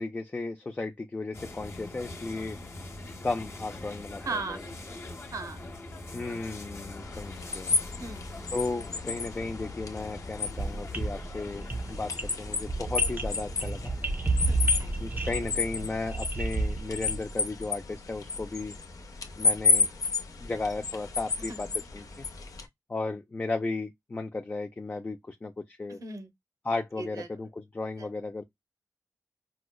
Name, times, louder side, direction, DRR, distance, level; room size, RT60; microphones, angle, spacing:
voice 1, 0.0-2.6 3.2-4.6 6.1-7.7 8.5-13.9 15.0-18.8 19.4-19.9 20.4-21.7 21.9-22.3 22.9-26.0 26.6-28.4, left 3 dB, 30° left, 0.4 m, -35 dB
sound 1, 1.3-15.9, left 2 dB, 45° left, 0.9 m, -43 dB
voice 2, 4.2-4.7 5.3-5.6 8.0-8.3 14.5-14.9 21.4-21.6 25.9-26.3 27.0-27.3 28.0-28.1, right 3 dB, 65° right, 0.8 m, -38 dB
sound 2, 7.0-22.6, left 4 dB, 70° left, 0.6 m, -32 dB
sound 3, 10.6-17.3, right 3 dB, 30° right, 0.6 m, -31 dB
4.8 x 2.0 x 2.2 m
wide cardioid pair, 115°, 6 cm